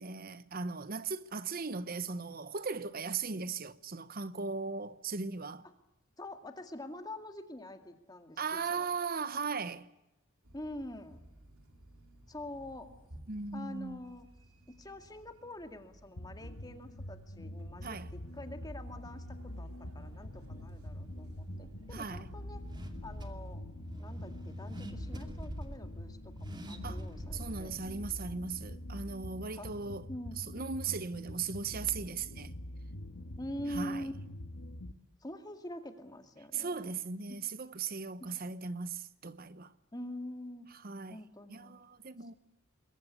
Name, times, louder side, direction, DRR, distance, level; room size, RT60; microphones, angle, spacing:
voice 1, 0.0-5.7 8.4-9.9 13.3-14.0 17.8-18.1 21.9-22.3 26.8-27.0 27.3-30.1 30.4-32.5 33.7-34.1 36.5-39.7 40.7-41.2 41.5-42.4, right 5 dB, 45° right, 0.9 m, -38 dB
voice 2, 6.2-8.9 10.5-11.2 12.3-12.9 13.5-14.3 14.8-22.6 23.0-23.7 24.0-27.7 29.5-29.8 30.1-30.6 33.4-34.2 35.2-37.0 37.3-37.4 38.2-38.3 39.9-40.7 41.1-41.8, left 1 dB, 15° left, 2.1 m, -45 dB
sound 1, 10.4-23.6, right 1 dB, 90° right, 4.4 m, -58 dB
sound 2, 16.2-34.9, left 1 dB, 75° left, 1.9 m, -45 dB
Car / Accelerating revving vroom, 20.0-29.2, equal, 20° right, 2.5 m, -46 dB
27.5 x 22.5 x 8.2 m
head